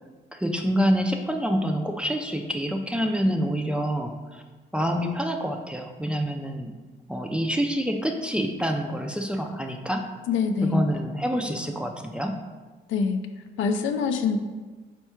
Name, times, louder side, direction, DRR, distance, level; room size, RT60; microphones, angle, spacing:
voice 1, 0.3-4.4 4.7-6.7 7.1-10.1 10.6-12.4, equal, 5° right, 3 dB, 0.3 m, -27 dB
voice 2, 10.3-10.9 12.9-13.2 13.6-14.4, left 5 dB, 75° left, 7 dB, 0.4 m, -24 dB
4.4 x 2.2 x 4.3 m, 1.3 s
cardioid pair, 90°, 20 cm